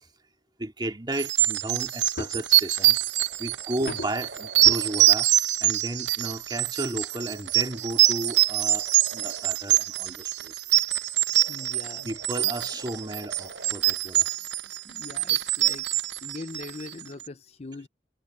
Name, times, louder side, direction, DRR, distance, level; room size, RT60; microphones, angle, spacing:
voice 1, 0.6-3.0 3.4-5.3 5.6-8.9 9.1-10.6 12.0-14.3, right 1 dB, 25° right, 2.3 m, -34 dB
sound 1, 1.2-17.0, right 15 dB, 90° right, 0.7 m, -24 dB
sound 2, 2.2-2.6 3.8-4.3 4.7-4.8 5.7-5.8 6.2-6.3 6.6-6.7 7.3-7.4, left 1 dB, 85° left, 2.3 m, -35 dB
sound 3, 2.3-2.4 2.8-5.1 6.7-9.5 11.0-13.8 16.1-16.2, right 2 dB, 70° right, 6.3 m, -47 dB
voice 2, 11.5-12.1 14.8-15.9 16.2-17.9, left 3 dB, 35° left, 0.5 m, -41 dB
head